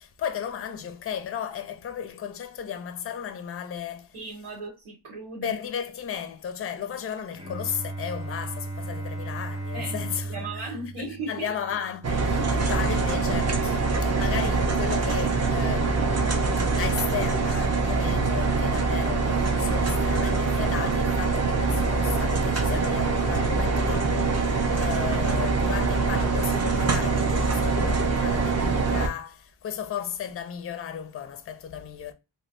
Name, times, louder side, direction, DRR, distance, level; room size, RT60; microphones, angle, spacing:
voice 1, 0.0-4.2 5.4-10.7 11.0-16.3 16.7-32.1, left 8 dB, 30° left, 0.4 m, -35 dB
voice 2, 4.1-5.6 9.7-10.0 10.3-11.5 12.4-12.5, right 3 dB, 85° right, 1.4 m, -36 dB
Bowed string instrument, 7.3-13.1, right 2 dB, 15° right, 1.1 m, -37 dB
sound 1, 12.0-29.1, right 4 dB, 35° right, 0.5 m, -24 dB
3.1 x 2.1 x 2.4 m
wide cardioid pair, 100°, 48 cm